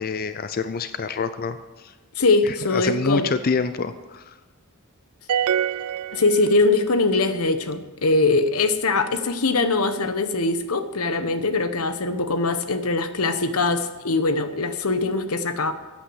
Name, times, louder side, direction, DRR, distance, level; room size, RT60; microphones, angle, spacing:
voice 1, 0.0-1.9 2.4-4.3, left 4 dB, 45° left, 11 dB, 0.5 m, -27 dB
voice 2, 2.2-3.3 6.1-15.7, left 3 dB, 85° left, 10 dB, 1.2 m, -22 dB
sound 1, 5.3-7.0, right 9 dB, 90° right, 0.4 m, -26 dB
14.0 x 9.0 x 7.9 m, 1.3 s
head